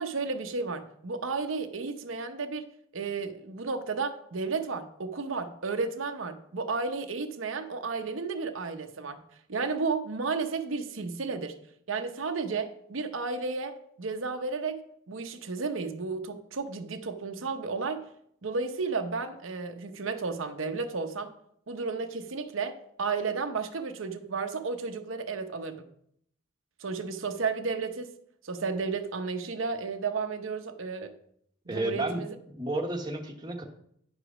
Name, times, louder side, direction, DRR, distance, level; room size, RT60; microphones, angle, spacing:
voice 1, 0.0-2.6 2.9-9.2 9.5-11.5 11.9-14.8 15.1-18.0 18.4-21.3 21.7-25.8 26.8-28.1 28.4-31.1 31.7-32.3, right 4 dB, 80° right, 6 dB, 0.8 m, -33 dB
voice 2, 31.7-32.2 32.6-33.6, right 1 dB, 20° right, 1 dB, 1.1 m, -31 dB
10.5 x 5.0 x 6.1 m, 0.69 s
head